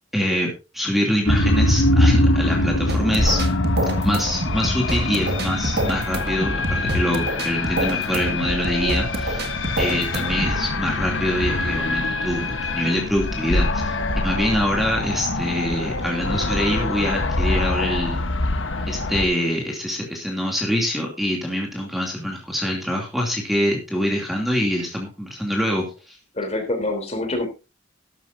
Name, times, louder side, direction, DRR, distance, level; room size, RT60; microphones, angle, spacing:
voice 1, 0.1-3.4 4.0-18.2 18.9-26.2, equal, ahead, 0 dB, 2.7 m, -25 dB
sound 1, 1.3-19.3, left 2 dB, 80° left, 1.3 m, -23 dB
sound 2, 2.6-10.6, right 1 dB, 55° right, 1.8 m, -27 dB
voice 2, 26.3-27.5, left 2 dB, 35° left, 5 dB, 3.4 m, -25 dB
13.0 x 12.5 x 2.7 m, 0.29 s
head